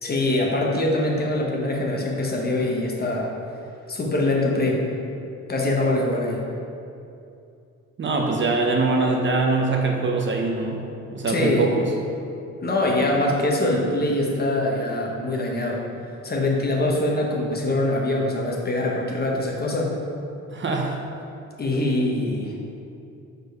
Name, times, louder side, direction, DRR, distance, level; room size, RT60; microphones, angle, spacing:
voice 1, 0.0-3.3 3.9-4.8 5.5-6.5 11.3-11.7 12.6-15.8 16.2-19.9 21.6-22.5, left 1 dB, 30° left, -1 dB, 1.0 m, -23 dB
voice 2, 8.0-10.9 11.1-11.8 20.5-21.0, right 3 dB, 40° right, 1 dB, 0.8 m, -23 dB
5.0 x 4.5 x 4.7 m, 2.6 s
cardioid pair, 90°, 30 cm